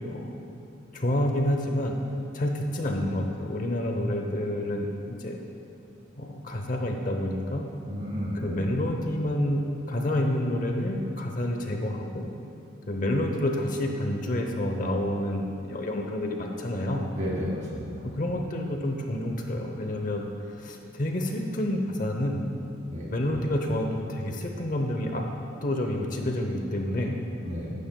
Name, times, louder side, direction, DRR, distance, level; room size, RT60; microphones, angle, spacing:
voice 1, 0.9-2.0 2.3-5.4 6.2-7.7 8.3-12.2 12.9-17.0 18.2-20.3 20.6-22.5 23.1-25.2 25.6-27.2, left 1 dB, 45° left, 3 dB, 0.8 m, -28 dB
voice 2, 7.9-8.6 17.1-18.1 22.9-23.1 27.4-27.7, equal, 40° right, -4 dB, 2.7 m, -32 dB
15.5 x 11.5 x 2.3 m, 2.8 s
head